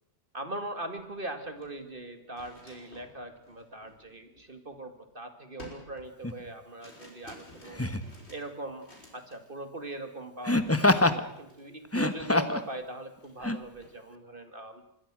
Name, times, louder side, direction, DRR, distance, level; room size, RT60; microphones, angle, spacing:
voice 1, 0.3-7.8 8.3-8.8 9.1-14.8, right 1 dB, 30° right, 8 dB, 2.3 m, -40 dB
sound 1, 0.9-1.1 1.4-5.0 5.6-9.5 9.8-10.1 10.6-10.8 11.1-12.8 13.1-14.0, left 1 dB, 40° left, 5.9 m, -54 dB
Laughter, 6.2-6.4 7.7-8.1 10.4-11.2 11.8-12.7 13.4-13.6, left 2 dB, 10° left, 1.0 m, -25 dB
26.0 x 21.5 x 6.2 m, 0.82 s
omnidirectional pair, 1.8 m